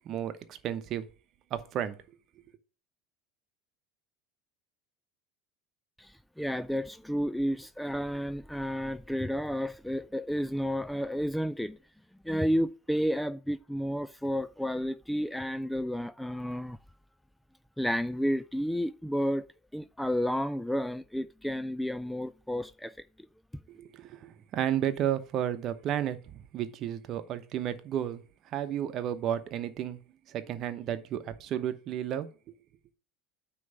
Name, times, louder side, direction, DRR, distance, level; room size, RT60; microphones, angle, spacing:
voice 1, 0.0-1.1 1.5-2.0 23.7-30.0 30.3-32.5, right 10 dB, 45° right, 0.9 m, -33 dB
voice 2, 6.0-11.8 12.2-16.8 17.8-19.5 19.7-23.0, equal, 5° left, 0.3 m, -31 dB
9.4 x 3.1 x 6.5 m
hypercardioid pair, 75°, 0 cm